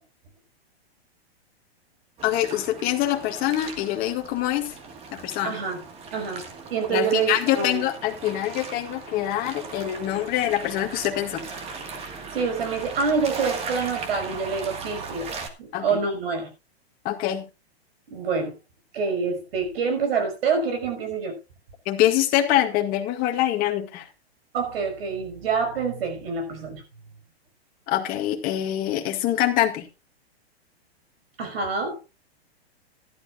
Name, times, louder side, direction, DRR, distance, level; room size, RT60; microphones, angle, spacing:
voice 1, 2.2-4.6 5.2-5.5 6.9-11.4 15.7-16.0 17.0-17.5 21.9-24.0 27.9-29.8, left 13 dB, 30° left, 1.9 m, -24 dB
sound 1, 2.2-15.5, right 4 dB, 20° right, 1.7 m, -38 dB
voice 2, 5.4-5.8 6.1-7.9 12.3-15.3 15.6-16.5 18.1-18.6 18.9-21.4 24.5-26.8 31.4-32.0, right 5 dB, 65° right, 5.5 m, -26 dB
16.0 x 12.0 x 2.4 m
hypercardioid pair, 150°, 31 cm